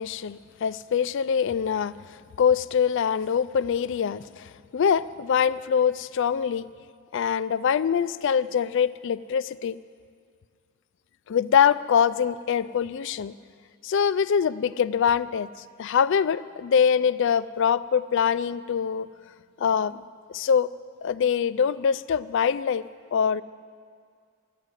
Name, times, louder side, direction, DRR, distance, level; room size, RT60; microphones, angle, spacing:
voice 1, 0.0-2.0 2.4-6.7 7.1-9.8 11.3-13.3 13.8-15.5 15.8-19.1 19.6-20.0 20.3-20.7 21.0-23.4, left 7 dB, 60° left, 16 dB, 0.3 m, -24 dB
13.5 x 8.0 x 9.1 m, 2.2 s
head